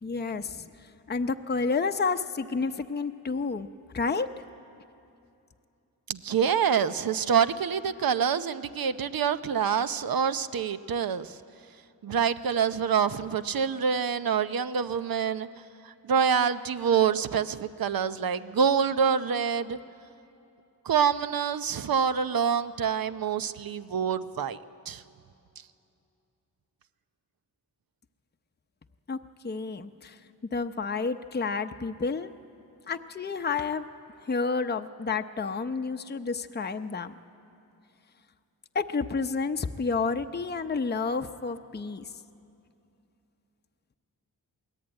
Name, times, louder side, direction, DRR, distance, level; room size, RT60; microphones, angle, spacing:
voice 1, 0.0-3.7 3.9-4.3 29.1-29.2 29.4-30.2 30.5-32.3 32.9-33.9 34.2-37.1 38.7-42.1, left 4 dB, 25° left, 7 dB, 0.7 m, -30 dB
voice 2, 6.1-11.4 12.0-15.5 15.8-19.8 20.8-24.6 24.9-25.0, right 7 dB, 65° right, 12 dB, 0.8 m, -26 dB
22.5 x 17.0 x 8.9 m, 2.7 s
cardioid pair, 55°, 38 cm